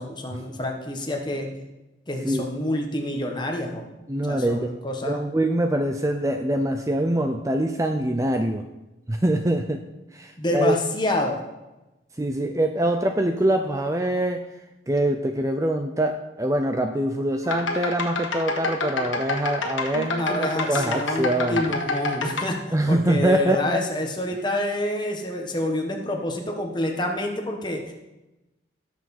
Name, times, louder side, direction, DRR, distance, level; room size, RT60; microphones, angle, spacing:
voice 1, 0.0-1.6 2.1-3.9 4.2-5.3 10.4-11.4 20.2-22.6 22.9-27.9, left 1 dB, 25° left, 2 dB, 1.4 m, -27 dB
voice 2, 4.1-4.7 5.0-8.7 9.1-9.8 10.1-10.8 12.2-14.4 14.9-21.6 22.7-23.8, right 1 dB, 15° right, 6 dB, 0.5 m, -24 dB
sound 1, 17.4-22.4, left 3 dB, 80° left, 1.5 m, -28 dB
16.5 x 7.0 x 4.3 m, 1.0 s
head